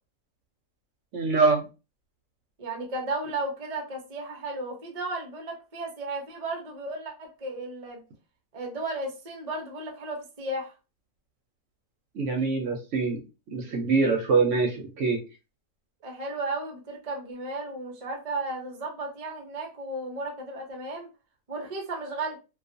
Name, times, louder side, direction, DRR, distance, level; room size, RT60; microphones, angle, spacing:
voice 1, 1.1-1.6 12.1-13.2 13.5-15.2, right 4 dB, 65° right, 0.8 m, -24 dB
voice 2, 2.6-8.0 8.5-10.7 16.0-21.1 21.5-22.4, right 2 dB, 45° right, 0.5 m, -34 dB
2.4 x 2.3 x 2.6 m
omnidirectional pair, 1.6 m